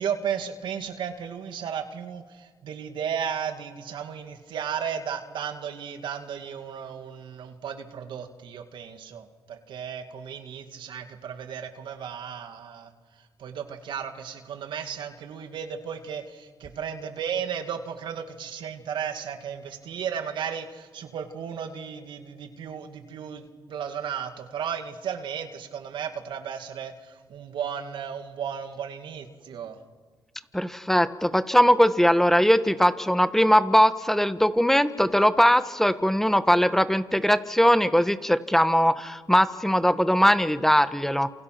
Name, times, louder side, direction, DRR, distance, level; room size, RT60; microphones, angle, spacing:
voice 1, 0.0-12.9 13.4-29.8, right 8 dB, 75° right, 6 dB, 2.2 m, -34 dB
voice 2, 30.5-41.3, equal, 5° left, 12 dB, 1.4 m, -20 dB
28.0 x 28.0 x 6.1 m, 1.5 s
supercardioid pair, 65°, 8 cm